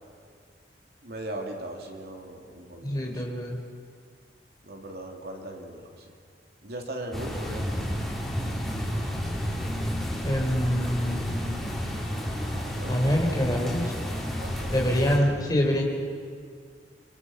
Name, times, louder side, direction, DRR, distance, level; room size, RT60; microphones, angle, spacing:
voice 1, 1.0-3.2 4.6-6.1 6.6-7.6 12.6-13.2 14.3-15.0, right 1 dB, 60° right, 2 dB, 3.1 m, -39 dB
voice 2, 2.8-3.6 10.2-11.7 12.9-13.9 14.7-15.8, equal, 25° left, 0 dB, 4.4 m, -25 dB
sound 1, 7.1-15.2, equal, ahead, 5.2 m, -31 dB
30.0 x 27.0 x 5.8 m, 2.1 s
head